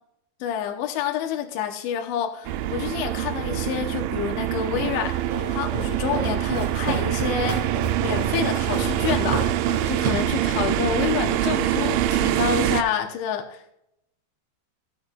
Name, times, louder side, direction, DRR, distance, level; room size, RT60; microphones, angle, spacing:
voice 1, 0.4-5.2 5.5-7.6 8.0-9.6 9.9-13.7, left 8 dB, 85° left, 4 dB, 3.1 m, -28 dB
sound 1, 2.5-12.8, right 12 dB, 85° right, 2.9 m, -25 dB
Walk footsteps, 4.8-11.2, right 3 dB, 50° right, 3.1 m, -32 dB
14.5 x 8.8 x 2.3 m, 0.80 s
omnidirectional pair, 5.2 m